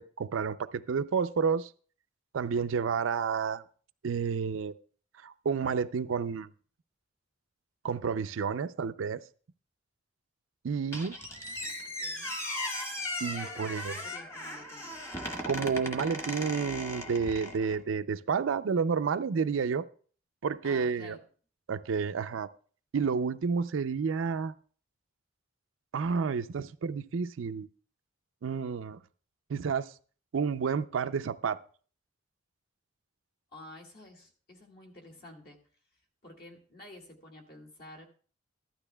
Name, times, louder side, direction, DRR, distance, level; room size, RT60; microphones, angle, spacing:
voice 1, 0.0-1.7 2.3-3.6 4.0-4.7 5.2-6.5 7.8-9.2 10.6-11.1 13.2-13.9 15.4-19.9 20.4-21.2 21.7-22.5 22.9-24.5 25.9-27.7 28.4-29.0 29.5-29.9 30.3-31.6, right 6 dB, 80° right, 11 dB, 0.4 m, -30 dB
Squeak, 10.9-17.8, left 1 dB, 15° left, 1.1 m, -37 dB
voice 2, 11.3-12.4 13.4-15.0 20.6-21.2 33.5-35.6 36.2-38.1, left 1 dB, 50° left, 2 dB, 1.9 m, -50 dB
14.5 x 12.0 x 2.2 m, 0.43 s
head